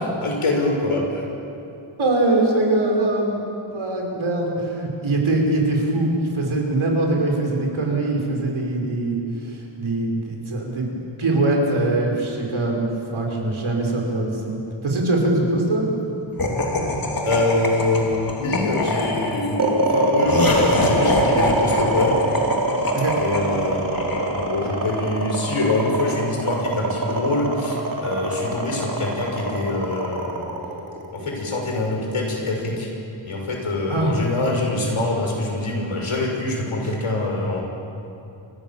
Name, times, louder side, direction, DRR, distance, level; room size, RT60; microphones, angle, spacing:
voice 1, 0.2-1.2 17.2-22.2 23.1-30.5 31.1-32.9 33.2-37.6, left 2 dB, 90° left, 0 dB, 6.0 m, -24 dB
voice 2, 2.0-3.4 3.7-15.9 22.9-23.1 33.9-34.1 36.8-36.9, right 2 dB, 75° right, 0 dB, 5.6 m, -22 dB
Laughter, 16.4-24.8, left 1 dB, 45° left, 3.4 m, -25 dB
sound 1, 19.6-31.9, right 2 dB, 40° right, 3.7 m, -24 dB
28.5 x 24.5 x 7.2 m, 2.8 s
wide cardioid pair, 120°, 48 cm